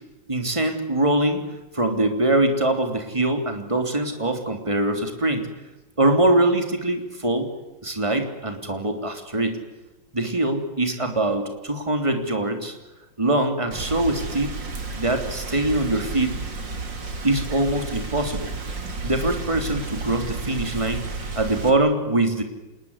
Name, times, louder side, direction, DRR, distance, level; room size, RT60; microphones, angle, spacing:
voice 1, 0.3-1.4 1.7-5.5 6.0-7.5 7.8-9.6 10.1-12.7 13.2-14.5 15.0-16.4 17.2-18.5 19.0-21.0 21.3-22.4, right 1 dB, 15° right, 5 dB, 3.3 m, -23 dB
Rain, 13.7-21.7, right 3 dB, 80° right, 3.6 m, -32 dB
27.0 x 20.5 x 9.8 m, 1.1 s
omnidirectional pair, 2.0 m